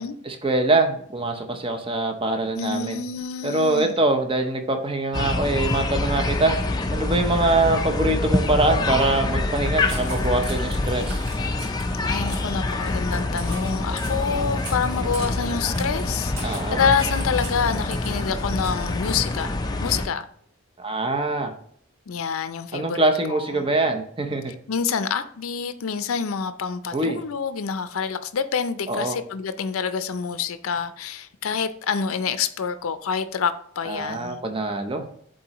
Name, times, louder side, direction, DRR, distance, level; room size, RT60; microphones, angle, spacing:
voice 1, 0.2-3.0 3.4-6.5 6.9-11.2 16.4-16.8 20.8-21.5 22.7-24.5 26.9-27.2 28.9-29.2 33.9-35.1, right 2 dB, 25° right, 0.6 m, -23 dB
voice 2, 2.6-4.0 12.0-19.5 19.8-20.3 22.1-23.6 24.7-34.4, left 6 dB, 75° left, 0.5 m, -27 dB
sound 1, 5.1-20.1, left 2 dB, 20° left, 0.4 m, -26 dB
sound 2, 9.5-19.6, right 2 dB, 75° right, 1.9 m, -41 dB
8.4 x 3.8 x 2.9 m
head